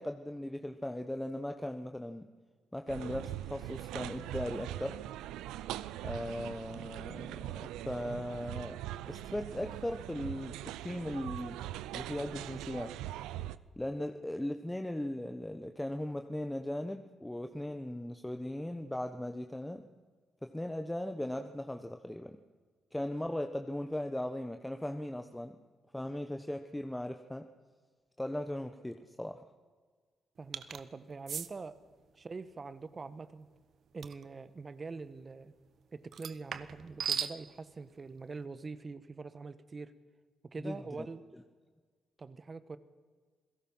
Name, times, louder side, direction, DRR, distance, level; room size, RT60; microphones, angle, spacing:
voice 1, 0.0-2.3 2.7-5.0 6.0-8.8 9.1-10.6 10.8-11.6 11.9-12.9 13.8-19.9 20.4-22.4 22.9-25.6 25.9-27.5 28.2-29.4 40.6-41.1, left 1 dB, 10° left, 6 dB, 1.2 m, -38 dB
sound 1, 2.9-13.6, right 13 dB, 85° right, 0.5 m, -41 dB
voice 2, 30.4-31.8 32.2-33.5 33.9-35.5 35.9-39.9 40.4-41.3 42.2-42.8, right 4 dB, 45° right, 13 dB, 1.3 m, -44 dB
sound 2, 30.5-30.8 31.3-31.5 34.0-34.2 36.1-37.4, right 7 dB, 65° right, 0.9 m, -36 dB
27.5 x 17.5 x 5.7 m, 1.5 s
hypercardioid pair, 45°, 0 cm